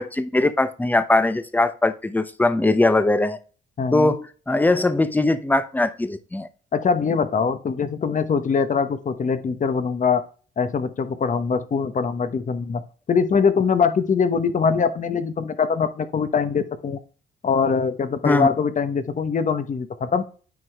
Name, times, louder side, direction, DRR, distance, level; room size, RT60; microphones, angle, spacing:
voice 1, 0.0-3.4 3.9-6.5 18.2-18.5, left 2 dB, 10° left, 12 dB, 0.7 m, -20 dB
voice 2, 3.8-4.1 6.7-10.2 10.6-12.8 13.1-17.0 17.4-20.2, left 5 dB, 40° left, 11 dB, 1.0 m, -22 dB
9.5 x 4.6 x 3.5 m, 0.38 s
cardioid pair, 90°, 20 cm